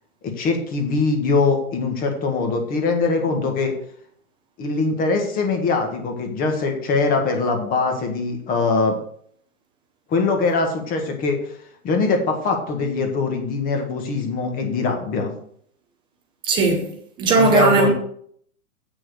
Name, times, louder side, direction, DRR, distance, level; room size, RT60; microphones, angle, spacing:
voice 1, 0.2-3.7 4.6-9.0 10.1-11.4 11.8-15.3 17.3-17.9, left 4 dB, 20° left, 1.6 m, -22 dB
voice 2, 16.4-17.9, right 3 dB, 10° right, 0.7 m, -18 dB
8.6 x 6.2 x 6.3 m
hypercardioid pair, 160°, 45 cm